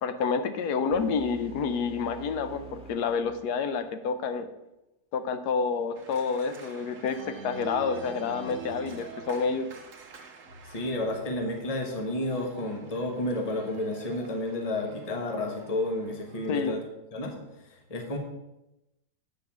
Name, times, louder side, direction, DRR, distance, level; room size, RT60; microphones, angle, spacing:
voice 1, 0.0-4.5 5.1-9.7 16.5-16.8, left 5 dB, 75° left, 10 dB, 1.2 m, -29 dB
sound 1, 0.9-3.9, right 3 dB, 5° right, 1.2 m, -47 dB
Organ, 5.9-16.7, right 5 dB, 55° right, 1.3 m, -47 dB
voice 2, 10.6-16.8 17.1-18.2, left 1 dB, 25° left, 2 dB, 1.2 m, -31 dB
7.9 x 4.6 x 7.2 m, 0.93 s
omnidirectional pair, 1.8 m